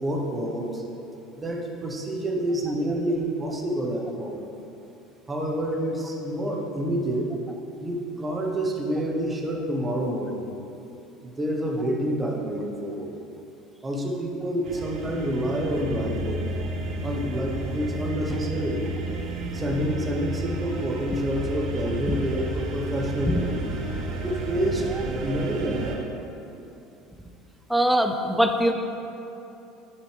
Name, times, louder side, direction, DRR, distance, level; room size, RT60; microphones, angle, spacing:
voice 1, 0.0-0.8 1.4-4.4 5.3-7.3 7.8-10.6 11.2-13.1 13.8-16.6 17.0-18.9 19.5-23.5 24.2-24.9 25.2-26.1, right 1 dB, 20° right, 0 dB, 1.0 m, -28 dB
sound 1, 14.6-26.0, right 2 dB, 55° right, 0.9 m, -32 dB
voice 2, 27.7-28.7, equal, ahead, 5 dB, 0.4 m, -22 dB
9.7 x 4.9 x 3.4 m, 2.9 s
supercardioid pair, 115°, 0 cm